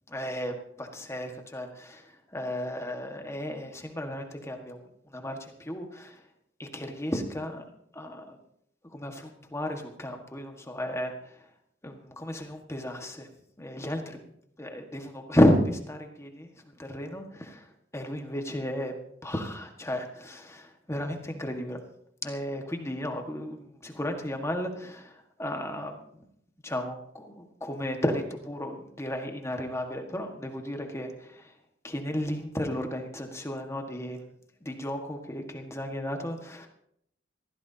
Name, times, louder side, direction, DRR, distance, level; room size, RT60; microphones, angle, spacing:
voice 1, 0.1-2.0 2.3-4.8 5.1-6.2 6.6-7.6 7.9-8.4 8.9-11.1 11.8-13.3 13.6-14.2 14.6-16.5 16.8-18.9 19.2-21.8 22.2-23.6 23.8-25.1 25.4-26.2 26.6-31.5 31.8-34.2 34.6-36.7, left 1 dB, 15° left, 4 dB, 1.6 m, -32 dB
21.5 x 15.5 x 2.8 m, 0.72 s
head